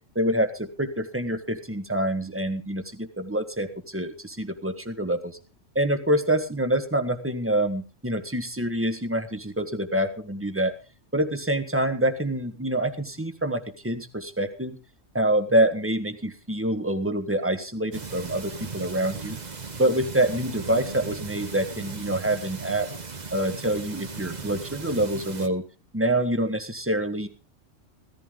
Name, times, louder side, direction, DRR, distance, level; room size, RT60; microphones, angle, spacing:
voice 1, 0.1-5.4 5.7-10.7 11.1-14.8 15.1-19.4 19.8-22.9 23.3-25.6 25.9-27.3, right 1 dB, 10° right, 8 dB, 1.5 m, -26 dB
sound 1, 17.9-25.5, right 4 dB, 35° right, 1.2 m, -37 dB
16.5 x 14.5 x 3.8 m, 0.33 s
omnidirectional pair, 1.3 m